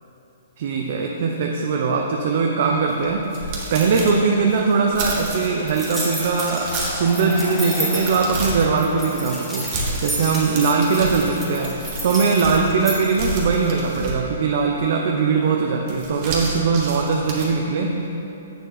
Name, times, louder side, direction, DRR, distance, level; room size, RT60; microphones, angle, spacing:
voice 1, 0.6-18.1, right 4 dB, 55° right, 1 dB, 0.6 m, -21 dB
sound 1, 2.9-5.7 6.1-7.2 7.6-8.7 9.6-12.7 13.0-14.5 15.8-17.5, right 2 dB, 35° right, 1.3 m, -30 dB
sound 2, 3.8-12.6, left 3 dB, 20° left, 0.6 m, -40 dB
sound 3, 5.7-13.0, right 1 dB, ahead, 1.4 m, -31 dB
7.9 x 6.7 x 4.0 m, 3.0 s
hypercardioid pair, 155°, 0 cm